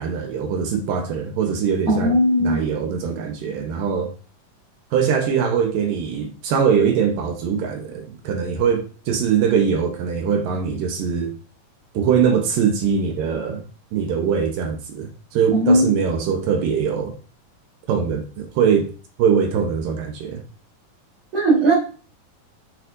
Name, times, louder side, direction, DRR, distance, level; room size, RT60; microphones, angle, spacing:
voice 1, 0.0-4.1 4.9-11.3 11.9-13.6 13.9-17.2 17.9-18.9 19.2-20.4, right 7 dB, 75° right, 2.6 m, -22 dB
voice 2, 1.9-2.6 15.5-15.9 21.3-21.7, right 1 dB, 40° right, 4.4 m, -17 dB
8.0 x 7.9 x 2.6 m
omnidirectional pair, 3.9 m